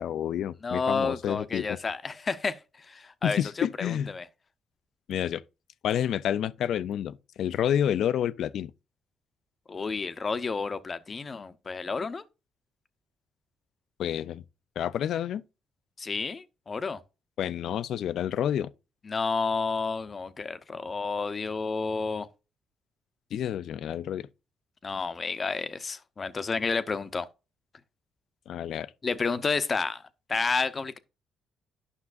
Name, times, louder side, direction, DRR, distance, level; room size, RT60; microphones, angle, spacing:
voice 1, 0.0-1.7 3.2-4.1 5.1-5.4 5.8-8.7 14.0-14.4 14.8-15.4 17.4-18.7 23.3-24.3 28.5-28.9, left 10 dB, 70° left, 0.4 m, -29 dB
voice 2, 0.6-4.3 9.7-12.2 16.0-17.0 19.0-22.3 24.8-27.3 29.0-30.0 30.3-31.0, left 4 dB, 35° left, 0.7 m, -30 dB
9.8 x 5.7 x 2.5 m
cardioid pair, 90°, 0 cm